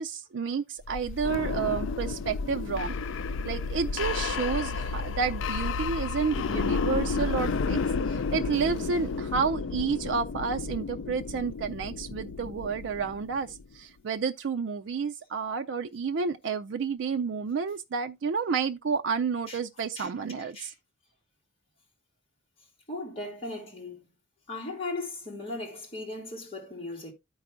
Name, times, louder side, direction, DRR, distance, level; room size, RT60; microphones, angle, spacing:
voice 1, 0.0-2.9 3.4-7.8 8.1-20.7, right 5 dB, 75° right, 0.4 m, -30 dB
sound 1, 0.8-13.6, left 4 dB, 90° left, 0.4 m, -32 dB
voice 2, 20.4-20.7 22.9-24.0 24.5-27.1, left 2 dB, 30° left, 2.5 m, -37 dB
13.5 x 4.7 x 2.4 m
head